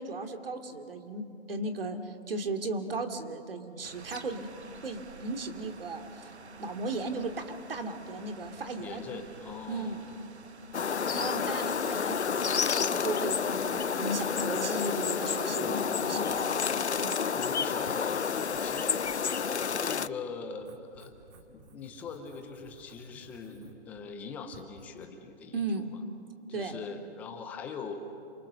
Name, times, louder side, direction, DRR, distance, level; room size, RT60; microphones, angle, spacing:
voice 1, 0.0-4.5 4.8-6.3 6.6-9.1 9.7-10.0 11.1-16.5 17.0-17.3 25.5-25.9 26.5-26.8, right 2 dB, 60° right, 6 dB, 2.7 m, -36 dB
sound 1, 3.8-16.4, right 4 dB, 80° right, 1.5 m, -51 dB
voice 2, 8.8-10.0 11.1-11.5 15.6-16.4 16.7-17.0 17.4-19.1 19.7-21.1 21.5-25.9 26.5-28.0, left 5 dB, 5° left, 6 dB, 0.7 m, -42 dB
sound 2, 10.7-20.1, left 6 dB, 85° left, 0.8 m, -30 dB
Writing, 17.4-25.0, right 3 dB, 25° right, 2.2 m, -56 dB
28.5 x 26.0 x 6.7 m, 2.6 s
figure-of-eight pair, 150°, 33 cm